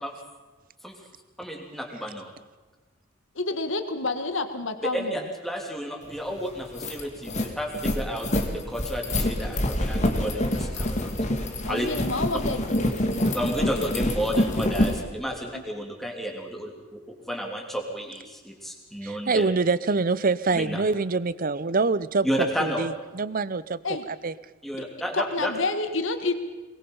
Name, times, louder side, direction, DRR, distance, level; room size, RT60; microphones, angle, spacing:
voice 1, 1.4-2.3 4.9-11.1 11.7-11.9 13.3-19.5 20.5-20.8 22.2-22.9 24.6-25.5, equal, ahead, 1 dB, 3.3 m, -32 dB
voice 2, 3.3-5.1 11.6-13.3 23.8-24.0 25.1-26.3, left 3 dB, 65° left, 9 dB, 1.7 m, -29 dB
sound 1, 6.2-6.3 6.6-15.0, left 1 dB, 35° left, 2.2 m, -26 dB
voice 3, 19.0-23.8 24.1-24.3, right 4 dB, 45° right, 17 dB, 0.7 m, -25 dB
22.5 x 21.5 x 5.6 m, 1.2 s
head